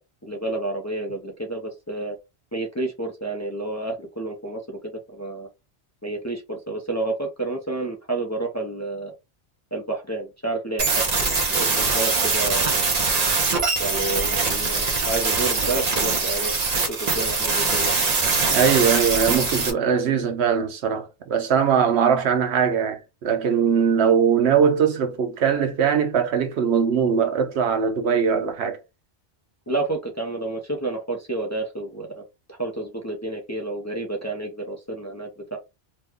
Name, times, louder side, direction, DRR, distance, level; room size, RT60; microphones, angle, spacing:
voice 1, 0.2-2.2 2.5-4.8 5.1-5.5 6.0-9.1 9.7-11.0 11.5-12.8 13.8-17.9 29.7-32.2 32.5-35.6, right 2 dB, 20° left, 0.5 m, -30 dB
sound 1, 10.8-19.7, right 4 dB, 45° right, 0.7 m, -22 dB
voice 2, 18.4-28.8, right 7 dB, 80° right, 0.9 m, -21 dB
3.0 x 2.2 x 3.5 m
omnidirectional pair, 1.1 m